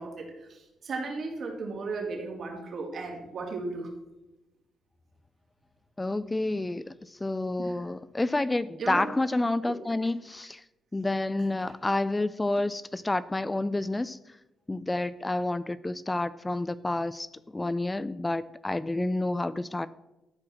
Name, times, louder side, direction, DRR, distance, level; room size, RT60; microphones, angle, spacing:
voice 1, 0.0-3.9 7.6-7.8 8.8-9.0 9.6-9.7, right 3 dB, 55° right, 0 dB, 3.2 m, -35 dB
voice 2, 6.0-10.6 10.9-14.2 14.7-17.3 17.5-19.9, left 2 dB, 15° left, 16 dB, 0.3 m, -29 dB
13.0 x 4.8 x 6.0 m, 1.0 s
cardioid pair, 90°, 0 cm